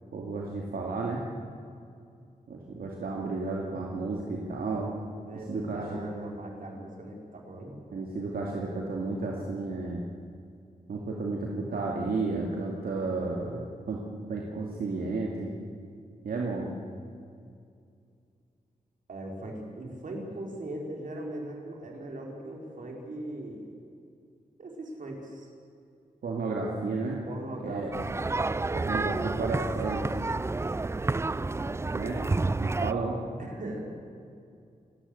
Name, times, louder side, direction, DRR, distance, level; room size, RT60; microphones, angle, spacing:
voice 1, 0.1-1.2 2.5-4.9 5.5-6.0 7.9-10.0 10.9-13.6 13.9-14.0 14.3-15.5 16.2-16.7 26.2-27.2 27.6-27.9 28.7-30.0 31.9-32.2 32.6-33.2, right 3 dB, 80° right, -1 dB, 2.4 m, -32 dB
voice 2, 5.3-7.8 19.1-23.8 24.6-25.5 27.3-27.9 31.5-31.7 33.4-33.8, right 1 dB, 60° right, 0 dB, 4.8 m, -39 dB
sound 1, 27.9-32.9, right 3 dB, 20° right, 0.4 m, -29 dB
28.5 x 13.0 x 8.2 m, 2.4 s
wide cardioid pair, 105°, 15 cm